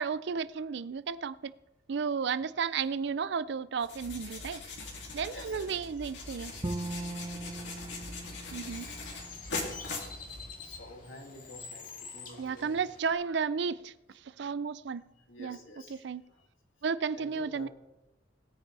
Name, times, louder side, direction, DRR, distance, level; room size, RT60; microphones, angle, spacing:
voice 1, 0.0-1.5 1.9-4.6 5.1-6.5 8.5-8.9 12.4-13.9 14.3-15.0 15.4-15.6 15.9-16.2 16.8-17.7, right 6 dB, 65° right, 0.4 m, -33 dB
sound 1, 3.8-10.8, left 3 dB, 65° left, 2.8 m, -41 dB
voice 2, 5.2-6.7 7.9-12.8 15.1-16.0 16.3-16.5 17.1-17.7, left 2 dB, 85° left, 2.9 m, -52 dB
Bowed string instrument, 6.6-9.8, right 2 dB, 30° right, 0.7 m, -40 dB
Bird, 8.1-13.1, left 5 dB, 45° left, 2.0 m, -47 dB
19.5 x 9.5 x 3.4 m
head